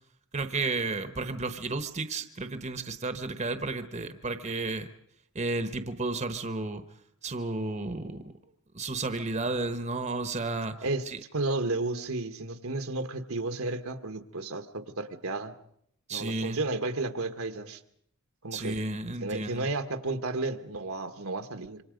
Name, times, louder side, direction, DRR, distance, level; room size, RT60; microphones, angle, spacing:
voice 1, 0.3-4.9 5.3-6.8 7.2-8.2 8.7-10.8 11.1-11.2 16.1-16.6 18.5-19.7, right 3 dB, 30° right, 9 dB, 1.1 m, -32 dB
voice 2, 11.3-15.5 16.1-17.8 18.4-18.8 19.2-21.8, right 2 dB, 70° right, 8 dB, 1.4 m, -32 dB
26.5 x 25.0 x 5.2 m, 0.71 s
head